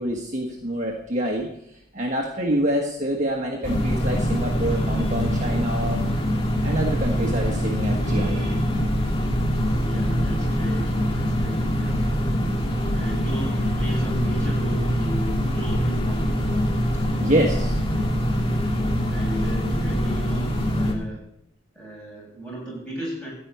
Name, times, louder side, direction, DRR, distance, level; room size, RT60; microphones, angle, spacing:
voice 1, 0.0-1.5 1.9-6.0 6.6-8.8 17.1-17.8, right 1 dB, 35° right, 0 dB, 1.5 m, -26 dB
sound 1, 3.6-20.9, equal, 25° left, 2.1 m, -24 dB
voice 2, 9.6-16.9 19.1-21.2 21.7-23.3, right 1 dB, 5° left, -5 dB, 6.7 m, -36 dB
14.5 x 5.7 x 9.3 m, 0.76 s
head